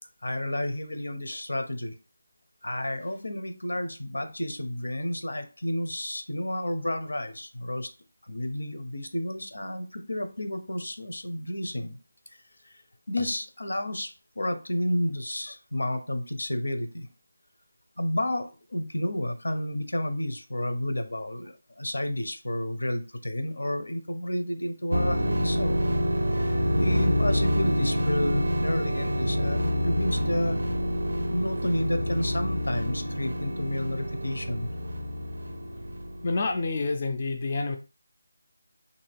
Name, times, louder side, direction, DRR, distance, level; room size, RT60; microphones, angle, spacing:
voice 1, 0.2-2.0 2.6-7.9 8.2-12.0 12.7-12.8 13.1-17.1 18.0-25.8 26.3-30.6 31.3-34.7, left 1 dB, 85° left, 8 dB, 0.6 m, -31 dB
sound 1, 24.9-36.6, equal, 75° right, 0.4 m, -27 dB
voice 2, 36.2-37.8, left 3 dB, 35° left, 4 dB, 0.3 m, -28 dB
2.6 x 2.4 x 3.3 m, 0.33 s
figure-of-eight pair, 165°, 0 cm